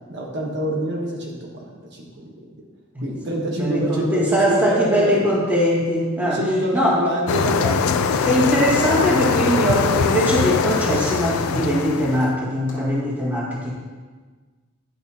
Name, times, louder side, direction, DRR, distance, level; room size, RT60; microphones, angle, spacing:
voice 1, 0.1-2.3 3.0-5.2 6.2-9.1, right 1 dB, 55° right, -1 dB, 1.1 m, -26 dB
voice 2, 3.6-6.4 6.7-7.0 8.2-13.7, equal, 10° right, -6 dB, 1.7 m, -21 dB
sound 1, 7.3-12.3, left 5 dB, 80° left, 0.4 m, -22 dB
sound 2, 10.8-11.1 11.5-11.7 12.1-12.4 12.7-13.0, left 1 dB, 40° left, 2.3 m, -40 dB
10.5 x 6.1 x 2.8 m, 1.4 s
head